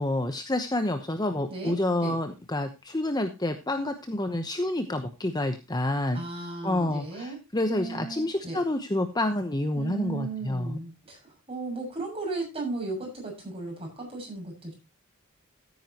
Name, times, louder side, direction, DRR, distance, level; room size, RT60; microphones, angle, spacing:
voice 1, 0.0-6.2 6.6-10.8, left 1 dB, 20° left, 7 dB, 0.9 m, -28 dB
voice 2, 6.1-7.4 7.7-8.6 9.7-11.2 11.5-14.7, right 3 dB, 25° right, 1 dB, 6.9 m, -35 dB
15.0 x 9.3 x 2.9 m, 0.25 s
head